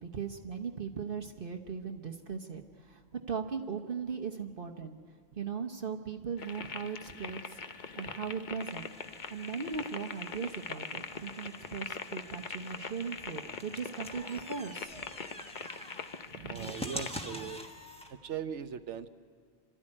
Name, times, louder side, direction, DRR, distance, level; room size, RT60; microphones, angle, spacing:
voice 1, 0.0-3.0 3.3-5.0 5.4-7.6 8.0-8.9 9.3-15.1 16.3-16.7, right 6 dB, 55° right, 3 dB, 1.2 m, -38 dB
sound 1, 6.4-17.1, left 5 dB, 45° left, 0.9 m, -43 dB
sound 2, 8.6-18.1, equal, 5° left, 1.3 m, -46 dB
voice 2, 16.5-17.6 18.2-19.1, right 7 dB, 85° right, 11 dB, 1.2 m, -39 dB
27.0 x 13.5 x 9.8 m, 2.3 s
omnidirectional pair, 1.2 m